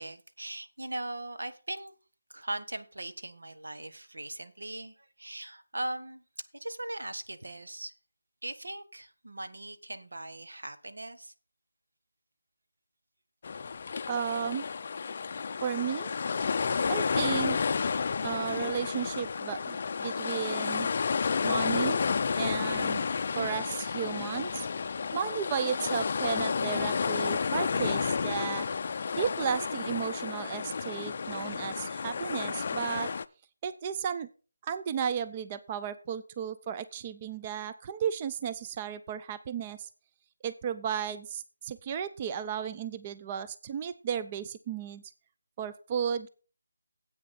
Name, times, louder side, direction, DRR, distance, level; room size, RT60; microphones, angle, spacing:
voice 1, 0.0-1.9 2.3-6.2 6.5-7.9 8.4-11.3, right 1 dB, 85° right, 10 dB, 1.3 m, -39 dB
sound 1, 13.4-33.2, left 5 dB, 40° left, 0.4 m, -31 dB
voice 2, 14.1-14.6 15.6-16.1 16.9-17.6 18.2-20.9 21.4-22.0 22.4-23.1 23.3-24.7 25.1-28.7 29.2-33.1 33.6-34.3 34.6-39.9 40.4-45.0 45.6-46.3, right 8 dB, 20° right, 12 dB, 0.4 m, -34 dB
9.7 x 8.4 x 4.2 m, 0.36 s
figure-of-eight pair, 170°, 0 cm